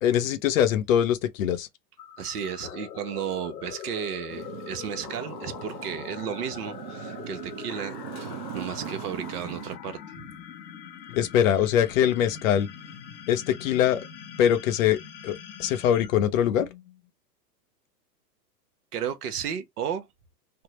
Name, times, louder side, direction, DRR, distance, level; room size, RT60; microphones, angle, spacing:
voice 1, 0.0-1.7 11.1-12.7 13.3-14.0 14.4-15.3 15.6-16.7, left 10 dB, 55° left, 0.6 m, -23 dB
sound 1, 2.0-17.1, left 8 dB, 80° left, 0.9 m, -42 dB
voice 2, 2.2-8.0 8.5-10.3 18.9-20.1, right 8 dB, 65° right, 1.0 m, -33 dB
Motorcycle, 4.3-9.8, right 10 dB, 35° right, 0.4 m, -40 dB
3.5 x 2.1 x 3.0 m
hypercardioid pair, 120°, 50 cm